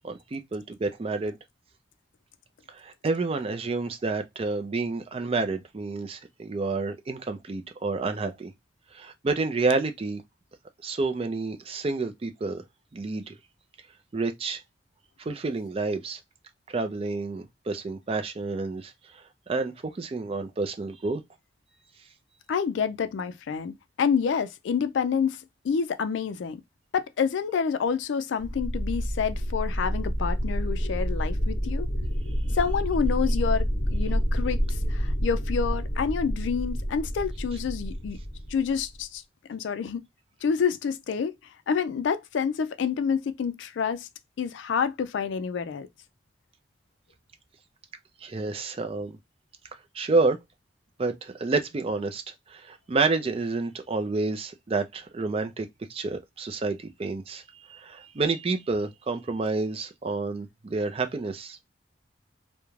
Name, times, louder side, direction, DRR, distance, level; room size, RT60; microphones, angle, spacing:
voice 1, 0.0-1.4 2.8-8.5 8.9-10.2 10.8-12.6 12.9-13.3 14.1-14.6 15.3-16.2 16.7-18.9 19.5-21.2 48.2-49.2 49.9-50.4 51.0-52.2 52.5-61.7, right 3 dB, 30° right, 0.4 m, -29 dB
voice 2, 22.5-25.4 25.6-26.6 26.9-31.9 32.5-34.6 34.9-38.2 38.5-39.2 39.5-40.0 40.4-41.3 41.7-44.0 44.4-45.9, left 6 dB, 75° left, 0.3 m, -28 dB
sound 1, 28.4-39.0, equal, 30° left, 0.9 m, -28 dB
2.4 x 2.1 x 3.0 m
head